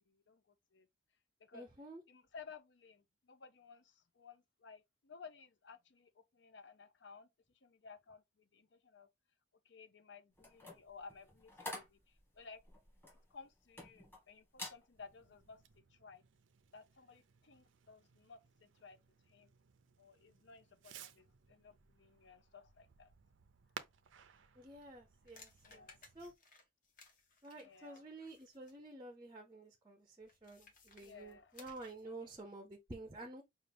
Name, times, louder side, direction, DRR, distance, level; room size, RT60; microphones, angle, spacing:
voice 1, 0.1-0.4 0.7-0.9 1.4-1.7 2.1-7.3 7.6-9.1 9.6-12.6 13.3-15.6 15.9-16.2 16.7-19.0 19.3-19.5 20.0-23.1 25.7-26.0 27.5-28.1 31.0-31.5 32.0-32.3, left 5 dB, 65° left, 0.6 m, -57 dB
voice 2, 1.5-2.0 24.6-25.9 26.1-26.3 27.4-33.4, right 2 dB, 20° right, 0.5 m, -51 dB
sound 1, 10.4-14.2 14.5-14.8 15.3-15.6, left 1 dB, 10° left, 1.5 m, -49 dB
Fireworks, 14.9-26.3, right 7 dB, 75° right, 0.5 m, -59 dB
sound 2, 24.8-28.8 30.2-32.1, left 4 dB, 45° left, 1.1 m, -62 dB
5.5 x 2.4 x 3.3 m
head